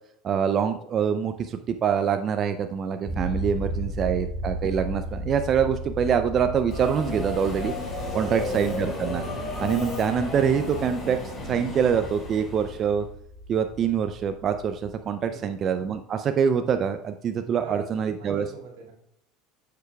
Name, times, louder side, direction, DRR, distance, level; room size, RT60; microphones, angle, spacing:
voice 1, 0.2-7.7 8.1-9.2 9.6-11.2 11.4-13.1 13.5-18.5, right 7 dB, 40° right, 8 dB, 0.4 m, -25 dB
sound 1, 3.1-15.0, right 1 dB, 25° right, 1.3 m, -36 dB
voice 2, 3.5-4.4 8.1-8.6 15.3-15.6 17.6-18.9, right 4 dB, 90° right, -1 dB, 2.0 m, -43 dB
Subway metro underground, 6.7-12.9, left 2 dB, 35° left, 2.3 m, -34 dB
8.1 x 6.7 x 2.3 m, 0.77 s
supercardioid pair, 100°, 0 cm